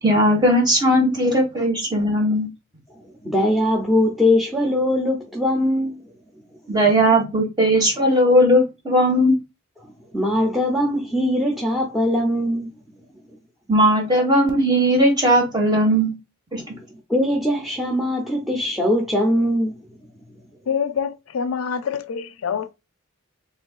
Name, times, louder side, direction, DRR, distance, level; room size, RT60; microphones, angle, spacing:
voice 1, 0.0-2.5 6.7-9.4 13.7-16.1 16.5-16.6, equal, 20° right, 1.5 m, -18 dB
voice 2, 3.2-6.0 10.1-12.7 17.1-19.8, left 1 dB, ahead, 0.7 m, -21 dB
voice 3, 20.7-22.7, left 6 dB, 80° left, 0.4 m, -26 dB
4.5 x 3.5 x 2.4 m
head